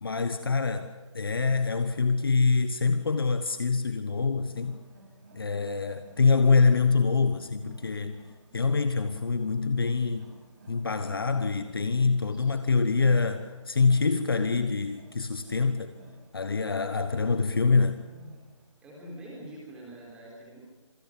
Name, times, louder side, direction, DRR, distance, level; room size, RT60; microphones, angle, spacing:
voice 1, 0.0-4.8 5.3-8.2 8.5-10.3 10.7-15.9 16.3-18.0, left 4 dB, 45° left, 1.2 m, -25 dB
Wild animals, 4.4-18.7, right 2 dB, 35° right, 6.1 m, -54 dB
voice 2, 18.8-20.6, right 1 dB, 5° right, 3.9 m, -45 dB
26.5 x 19.0 x 7.7 m
figure-of-eight pair, 170°, 17 cm